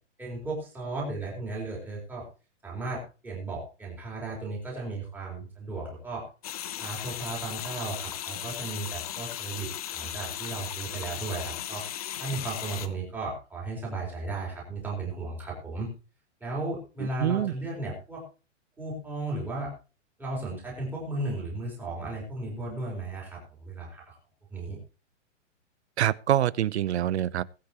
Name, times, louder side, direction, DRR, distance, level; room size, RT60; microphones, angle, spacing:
voice 1, 0.2-2.3 2.6-6.3 6.8-11.9 12.2-15.9 16.4-18.2 18.8-19.7 20.2-24.2 24.5-24.8, right 2 dB, 5° right, 4.2 m, -35 dB
sound 1, 6.4-12.9, left 11 dB, 30° left, 0.7 m, -36 dB
voice 2, 17.2-17.5 26.0-27.4, right 11 dB, 60° right, 0.7 m, -25 dB
21.0 x 8.6 x 3.0 m
hypercardioid pair, 170°, 37 cm